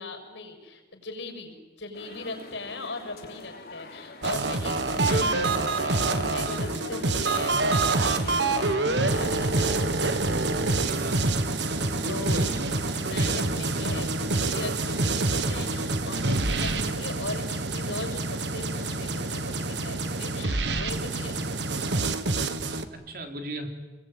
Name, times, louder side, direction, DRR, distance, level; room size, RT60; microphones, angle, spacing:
voice 1, 0.0-10.3 11.7-12.4 12.8-21.4, left 2 dB, 85° left, 4 dB, 6.6 m, -39 dB
sound 1, 1.9-9.8, left 3 dB, 55° left, 3.4 m, -41 dB
sound 2, 4.2-22.8, right 3 dB, 75° right, 1.6 m, -26 dB
voice 2, 10.8-11.3 12.0-13.6 22.9-23.7, right 1 dB, 55° right, 4 dB, 3.8 m, -38 dB
28.5 x 22.0 x 9.3 m, 1.2 s
head